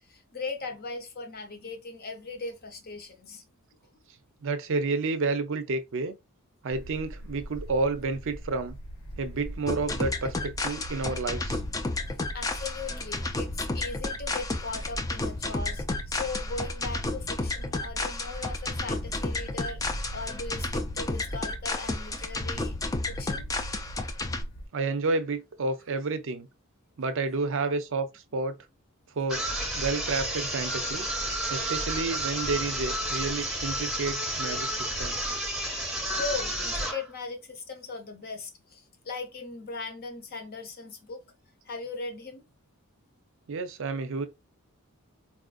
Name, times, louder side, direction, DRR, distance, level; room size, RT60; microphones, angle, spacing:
voice 1, 0.1-3.4 12.3-22.8 23.1-23.5 36.1-41.2 41.6-42.5, left 3 dB, 45° left, 0.7 m, -38 dB
voice 2, 4.4-6.1 6.6-8.8 9.2-11.6 24.7-26.5 27.0-28.6 29.2-29.5 29.7-31.1 31.5-35.2 43.5-44.3, right 3 dB, 60° right, 0.5 m, -30 dB
sound 1, 6.7-24.7, equal, 90° left, 1.2 m, -40 dB
sound 2, 9.7-24.4, left 3 dB, 15° left, 0.4 m, -32 dB
sound 3, 29.3-37.1, right 1 dB, ahead, 0.9 m, -31 dB
4.2 x 2.5 x 2.3 m
head